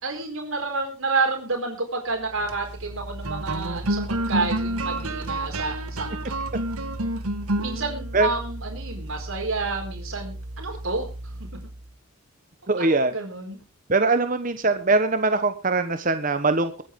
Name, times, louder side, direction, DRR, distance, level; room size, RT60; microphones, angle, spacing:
voice 1, 0.0-6.4 7.6-11.1 12.8-13.6, right 3 dB, 65° right, 4.3 m, -29 dB
sound 1, 2.3-11.9, right 1 dB, 80° right, 1.7 m, -30 dB
voice 2, 12.7-13.1 13.9-16.7, right 3 dB, 35° right, 1.1 m, -22 dB
23.0 x 9.1 x 3.7 m
head